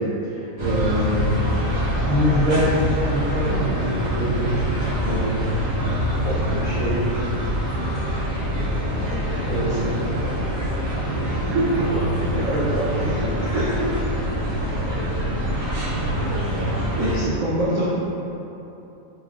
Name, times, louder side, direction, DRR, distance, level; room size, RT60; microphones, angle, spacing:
voice 1, 0.0-1.3 2.1-4.5 5.0-5.4 6.2-7.1 7.8-7.9 9.4-9.9 11.2-11.9 12.3-13.9 16.6-17.9, equal, 60° right, -11 dB, 0.3 m, -25 dB
sound 1, 0.6-17.2, equal, 80° right, 1.4 m, -25 dB
voice 2, 8.9-10.6 14.9-15.1, left 2 dB, 35° left, -11 dB, 1.3 m, -35 dB
4.0 x 3.2 x 2.4 m, 3.0 s
omnidirectional pair, 1.5 m